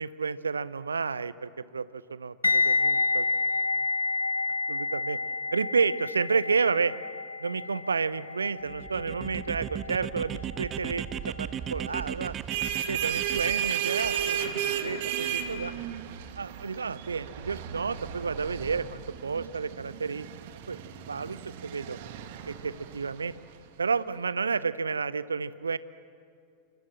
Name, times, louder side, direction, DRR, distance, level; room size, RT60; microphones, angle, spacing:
voice 1, 0.0-3.3 3.7-3.9 4.7-5.2 5.5-6.9 7.4-12.3 12.9-15.7 16.4-20.3 20.7-20.8 21.1-22.0 22.5-23.3 23.8-25.8, right 5 dB, 75° right, 18 dB, 0.7 m, -31 dB
sound 1, 2.4-11.4 11.6-11.9, left 3 dB, 80° left, 0.8 m, -30 dB
sound 2, 8.7-14.7, right 9 dB, 25° right, 0.9 m, -37 dB
sound 3, 12.2-23.6, right 9 dB, 50° right, 1.8 m, -34 dB
28.5 x 25.0 x 7.6 m, 2.5 s
figure-of-eight pair, 90°, 0 cm